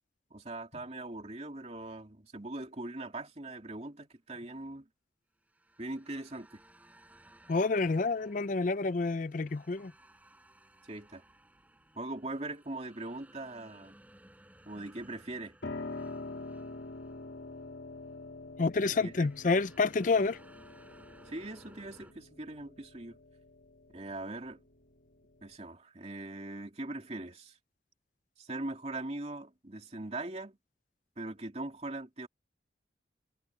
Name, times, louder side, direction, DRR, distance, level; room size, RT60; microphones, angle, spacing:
voice 1, 0.3-4.9 5.8-6.6 10.9-11.2 11.9-14.0 14.6-15.6 19.0-19.3 21.3-23.2 23.9-24.6 25.4-27.6 28.4-30.6 31.2-32.3, right 2 dB, 35° right, 2.8 m, -41 dB
sound 1, 2.8-3.0 5.4-17.8 18.1-18.3 19.0-22.1, right 1 dB, 10° right, 4.7 m, -60 dB
voice 2, 7.5-9.9 18.6-20.4, left 3 dB, 45° left, 0.5 m, -28 dB
Piano, 15.6-25.6, left 2 dB, 70° left, 2.6 m, -45 dB
head